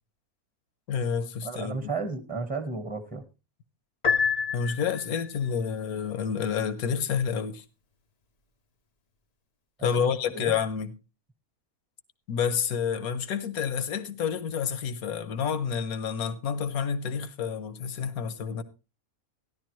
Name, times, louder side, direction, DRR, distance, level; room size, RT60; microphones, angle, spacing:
voice 1, 0.9-1.9 4.5-7.6 9.8-11.0 12.3-18.6, left 7 dB, 75° left, 1.4 m, -29 dB
voice 2, 1.4-3.2 9.8-10.5, right 4 dB, 5° right, 1.1 m, -34 dB
Piano, 4.0-5.3, left 6 dB, 40° left, 0.6 m, -27 dB
14.5 x 11.0 x 3.1 m
omnidirectional pair, 1.6 m